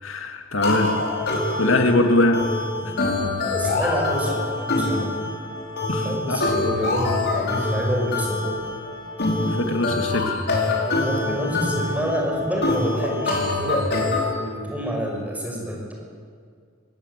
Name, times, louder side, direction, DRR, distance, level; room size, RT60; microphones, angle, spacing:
voice 1, 0.0-1.0 1.6-2.4 5.9-6.7 9.5-10.4, left 2 dB, 90° left, 4 dB, 2.3 m, -22 dB
sound 1, 0.6-14.3, left 2 dB, 55° left, 4.4 m, -25 dB
voice 2, 3.4-5.2 6.0-8.6 11.0-15.9, equal, 10° right, -1 dB, 5.5 m, -28 dB
23.0 x 17.5 x 8.2 m, 2.1 s
head